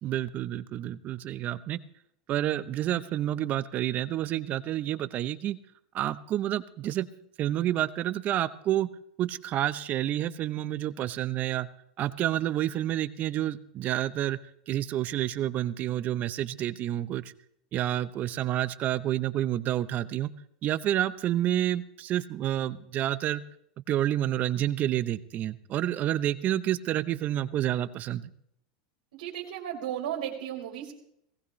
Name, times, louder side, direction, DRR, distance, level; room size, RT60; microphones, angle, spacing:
voice 1, 0.0-1.8 2.3-5.6 5.9-7.1 7.4-8.9 9.2-11.7 12.0-14.4 14.7-17.3 17.7-20.3 20.6-23.4 23.9-28.3, right 12 dB, 40° right, 15 dB, 0.8 m, -29 dB
voice 2, 29.1-30.9, right 10 dB, 85° right, -1 dB, 3.1 m, -34 dB
18.5 x 16.0 x 3.2 m, 0.72 s
supercardioid pair, 120°, 4 cm